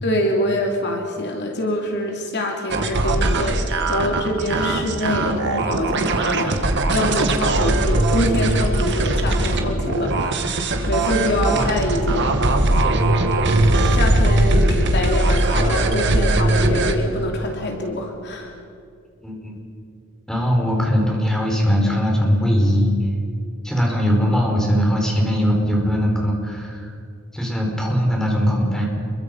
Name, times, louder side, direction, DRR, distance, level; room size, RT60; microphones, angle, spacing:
voice 1, 0.0-12.4 13.9-18.5, left 1 dB, 55° left, 1 dB, 2.9 m, -25 dB
sound 1, 2.7-16.9, right 2 dB, 60° right, 2.0 m, -20 dB
voice 2, 19.2-19.5 20.3-23.1 23.6-26.9 27.3-28.8, equal, 5° left, -1 dB, 5.3 m, -20 dB
27.5 x 23.0 x 5.5 m, 2.4 s
head